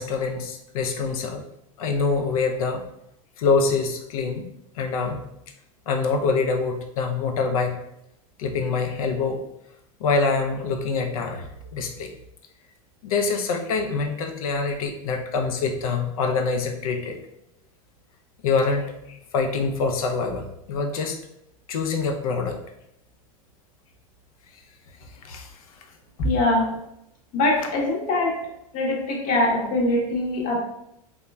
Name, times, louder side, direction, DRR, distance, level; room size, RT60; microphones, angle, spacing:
voice 1, 0.0-1.4 1.8-2.8 3.4-4.5 4.8-5.2 5.9-7.8 8.4-9.4 10.0-11.4 11.7-12.1 13.0-17.2 18.4-19.0 19.3-21.2 21.7-22.6 25.3-25.5, left 4 dB, 75° left, 5 dB, 0.5 m, -25 dB
voice 2, 26.2-26.7 27.3-28.4 28.7-30.6, left 2 dB, 45° left, -1 dB, 0.8 m, -22 dB
3.0 x 2.1 x 2.2 m, 0.79 s
hypercardioid pair, 105°, 18 cm